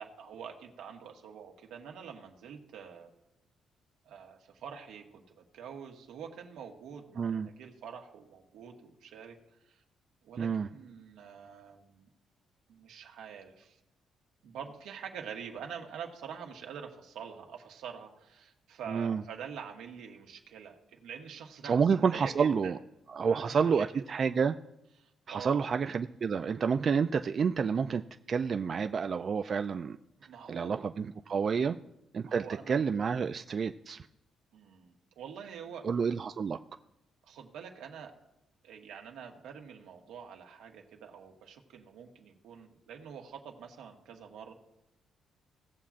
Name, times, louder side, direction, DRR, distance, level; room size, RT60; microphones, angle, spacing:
voice 1, 0.0-3.1 4.0-9.3 9.6-9.8 10.2-12.1 12.7-13.8 14.4-22.7 23.2-23.9 25.0-25.7 30.2-30.8 31.6-31.8 32.2-33.2 34.5-35.9 37.3-38.1 38.6-44.5, right 7 dB, 85° right, 2 dB, 1.5 m, -46 dB
voice 2, 7.2-7.5 10.4-10.7 18.9-19.2 21.6-22.8 23.1-24.5 25.3-28.0 28.3-30.0 30.5-31.8 32.1-34.1 35.8-36.6, right 6 dB, 45° right, 7 dB, 0.3 m, -29 dB
17.5 x 7.1 x 2.5 m, 0.91 s
cardioid pair, 90°, 0 cm